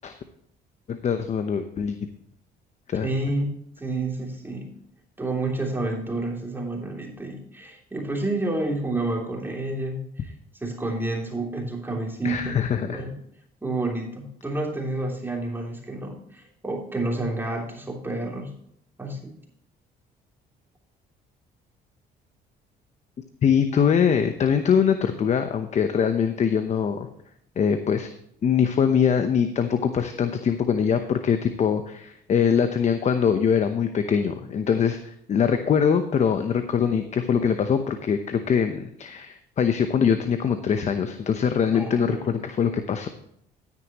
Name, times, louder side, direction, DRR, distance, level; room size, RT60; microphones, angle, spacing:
voice 1, 0.9-2.0 2.9-3.1 12.2-13.0 23.4-27.1 27.6-28.1 28.4-43.1, left 7 dB, 45° left, 8 dB, 0.9 m, -23 dB
voice 2, 3.0-4.8 5.2-10.3 10.6-13.1 13.6-18.5 19.0-19.3 41.7-42.2, right 2 dB, 10° right, 0 dB, 3.1 m, -29 dB
13.5 x 9.9 x 3.0 m, 0.71 s
cardioid pair, 110°, 17 cm